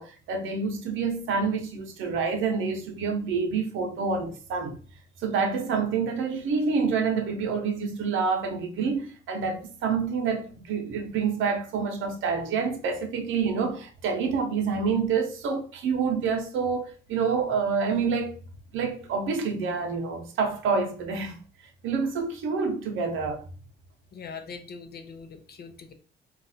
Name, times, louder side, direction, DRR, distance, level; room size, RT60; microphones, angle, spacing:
voice 1, 0.0-4.8 5.2-18.3 18.7-21.4 21.8-23.4, right 5 dB, 80° right, 0.8 m, -27 dB
voice 2, 24.1-25.9, left 5 dB, 55° left, 0.6 m, -42 dB
2.4 x 2.4 x 4.1 m
cardioid pair, 90°, 20 cm